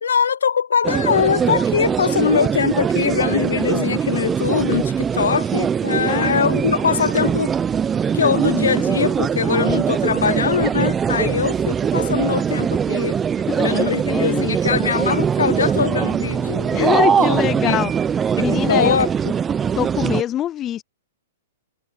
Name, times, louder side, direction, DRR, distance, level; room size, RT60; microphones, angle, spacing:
voice 1, 0.0-7.5 8.1-13.2 13.6-17.8 18.4-19.3, left 7 dB, 85° left, 0.7 m, -22 dB
sound 1, 0.8-20.2, right 7 dB, 20° right, 0.7 m, -21 dB
voice 2, 6.1-6.4 11.3-11.5 13.5-14.5 16.7-17.9 18.4-19.0 19.8-20.8, left 12 dB, 25° left, 0.4 m, -24 dB
hypercardioid pair, 125°, 0 cm